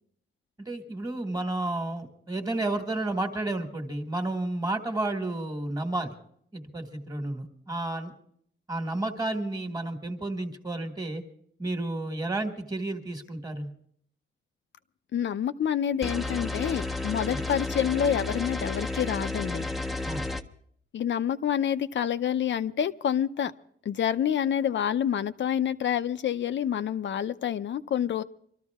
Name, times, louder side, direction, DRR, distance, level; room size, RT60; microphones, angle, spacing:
voice 1, 0.6-6.1 6.5-8.1 8.7-11.2 11.6-13.7 17.3-17.4 20.0-20.3, right 2 dB, 20° right, 5 dB, 1.6 m, -31 dB
voice 2, 15.1-19.7 20.9-23.5 23.9-28.2, left 9 dB, 60° left, 12 dB, 0.6 m, -27 dB
sound 1, 16.0-20.4, left 2 dB, ahead, 0.6 m, -32 dB
24.5 x 13.5 x 3.6 m, 0.64 s
wide cardioid pair, 175°, 21 cm